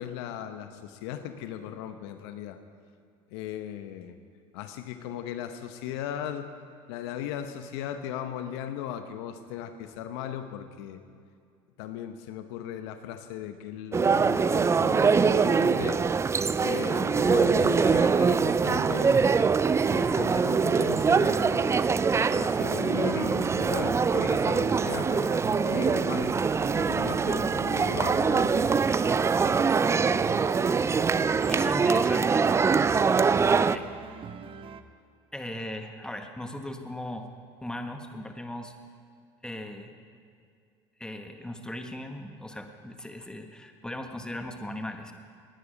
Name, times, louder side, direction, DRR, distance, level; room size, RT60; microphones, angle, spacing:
voice 1, 0.0-2.6 3.3-4.2 4.5-6.6 6.9-11.0 11.8-16.0 16.6-19.3 19.9-21.9 22.3-26.4 26.7-28.6, left 10 dB, 75° left, 9 dB, 1.0 m, -37 dB
sound 1, 13.9-33.8, right 5 dB, 20° right, 0.4 m, -23 dB
sound 2, 23.2-34.8, right 6 dB, 40° right, 0.8 m, -42 dB
voice 2, 31.4-32.5 33.6-33.9 35.3-37.3 37.6-38.7 39.4-40.0 41.0-45.1, left 1 dB, 5° left, 5 dB, 1.4 m, -38 dB
19.5 x 9.8 x 5.2 m, 2.3 s
supercardioid pair, 85°, 14 cm